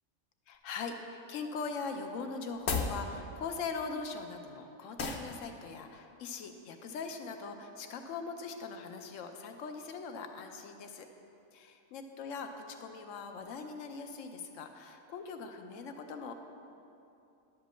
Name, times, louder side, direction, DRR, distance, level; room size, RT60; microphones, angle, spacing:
voice 1, 0.5-11.1 11.5-16.3, left 4 dB, 85° left, 5 dB, 1.1 m, -41 dB
sound 1, 2.5-3.0 5.0-5.3, left 4 dB, 60° left, 1.0 m, -32 dB
11.0 x 5.2 x 7.1 m, 2.7 s
omnidirectional pair, 1.3 m